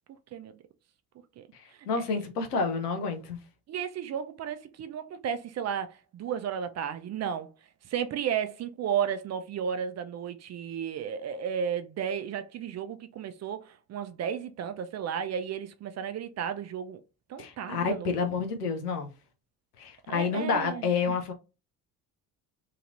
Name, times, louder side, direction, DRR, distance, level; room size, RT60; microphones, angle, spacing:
voice 1, 1.5-3.4 17.4-19.1 19.8-21.3, left 5 dB, 90° left, 0.7 m, -29 dB
voice 2, 3.7-7.5 7.9-17.0 17.3-18.2 20.1-21.2, right 8 dB, 35° right, 0.5 m, -33 dB
2.9 x 2.8 x 2.5 m
hypercardioid pair, 55°, 45 cm